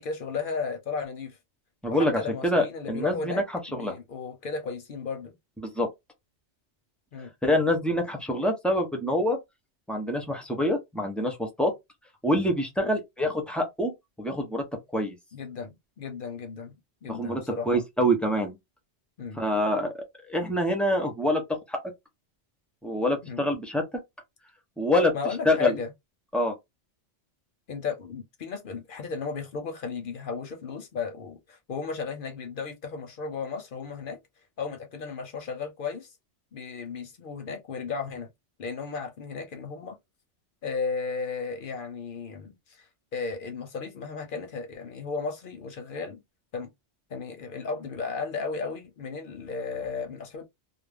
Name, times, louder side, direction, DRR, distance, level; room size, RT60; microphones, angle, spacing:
voice 1, 0.0-1.4 1.9-3.4 3.7-5.4 7.1-7.3 15.3-16.7 17.0-17.8 19.2-19.4 23.2-23.4 25.1-25.9 27.7-34.2 34.6-36.1 36.5-38.3 38.6-40.0 40.6-46.2 46.5-46.7 47.1-50.4, left 5 dB, 60° left, 0.7 m, -34 dB
voice 2, 1.8-3.4 3.7-3.9 5.6-5.9 7.4-9.4 9.9-11.7 12.2-13.9 14.2-14.6 14.9-15.2 17.1-18.6 19.4-21.8 22.8-23.8 24.8-25.1 25.5-25.8 26.3-26.5, left 1 dB, ahead, 0.4 m, -26 dB
2.4 x 2.0 x 3.3 m
omnidirectional pair, 1.2 m